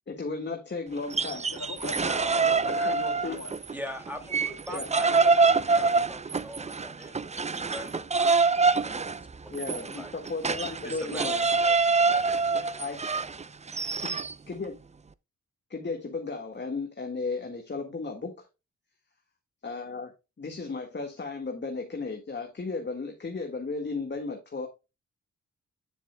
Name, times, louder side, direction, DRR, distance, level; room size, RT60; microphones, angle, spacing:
voice 1, 0.1-1.5 2.8-3.4 4.7-5.1 9.5-11.5 12.8-13.0 14.0-14.1 14.5-14.8 15.7-18.4 19.6-20.1 20.4-24.7, left 3 dB, 35° left, 1.9 m, -35 dB
sound 1, 1.0-3.7 4.1-14.3, right 4 dB, 25° right, 0.5 m, -25 dB
voice 2, 1.5-3.6, left 5 dB, 70° left, 2.8 m, -39 dB
voice 3, 3.7-8.5 8.8-9.3 9.7-10.1 10.8-12.9 13.1-13.3 13.8-14.0, equal, 5° right, 2.6 m, -43 dB
9.9 x 7.2 x 2.3 m
cardioid pair, 80°, 30 cm